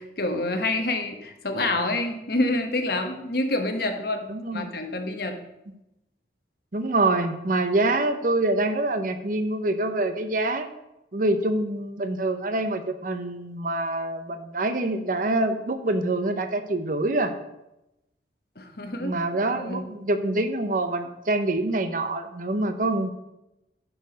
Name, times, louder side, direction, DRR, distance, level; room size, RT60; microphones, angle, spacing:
voice 1, 0.0-5.4 18.6-19.2 19.5-19.9, left 2 dB, 55° left, 5 dB, 1.1 m, -27 dB
voice 2, 4.3-4.7 6.7-10.7 11.1-17.3 19.0-23.1, right 2 dB, 45° right, 9 dB, 0.7 m, -25 dB
11.0 x 4.7 x 5.2 m, 0.91 s
head